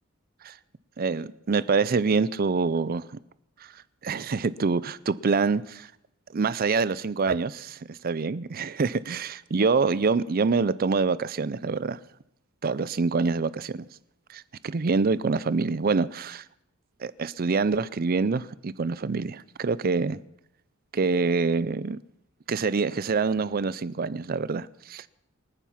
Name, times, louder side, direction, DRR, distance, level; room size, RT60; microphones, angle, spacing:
voice 1, 1.0-3.1 3.6-3.7 4.0-5.9 6.3-12.0 12.6-13.9 14.3-16.4 17.0-20.2 20.9-22.0 22.5-25.1, right 4 dB, 45° right, 0.5 m, -26 dB
26.5 x 9.3 x 5.8 m
head